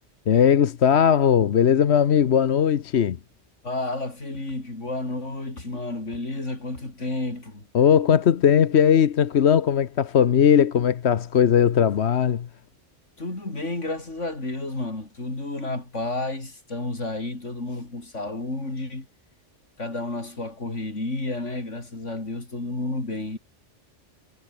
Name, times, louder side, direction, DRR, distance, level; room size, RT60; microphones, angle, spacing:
voice 1, 0.3-3.2 7.7-12.5, left 8 dB, 65° left, 1.2 m, -19 dB
voice 2, 3.6-7.7 13.2-19.1 19.8-23.4, left 2 dB, 85° left, 5.3 m, -31 dB
omnidirectional pair, 1.2 m